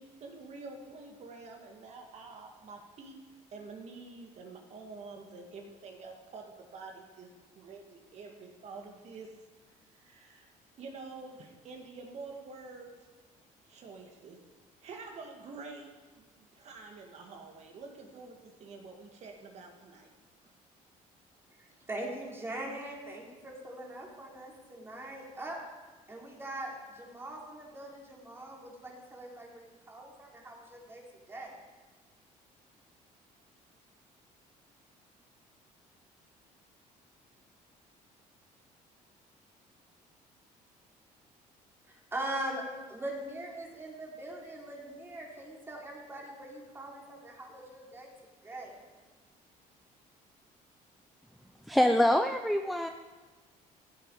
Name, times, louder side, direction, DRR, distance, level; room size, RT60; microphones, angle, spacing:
voice 1, 0.0-3.2 3.5-9.3 10.0-10.5 10.8-12.9 13.7-14.4 14.8-15.9 16.2-16.3 16.5-20.1, right 4 dB, 50° right, 2 dB, 2.2 m, -47 dB
voice 2, 21.5-25.6 26.1-31.6 41.9-48.1 48.4-48.8, right 1 dB, 15° right, -2 dB, 3.5 m, -41 dB
voice 3, 51.7-52.9, left 1 dB, ahead, 6 dB, 0.5 m, -25 dB
16.0 x 12.0 x 5.0 m, 1.3 s
cardioid pair, 130°, 14 cm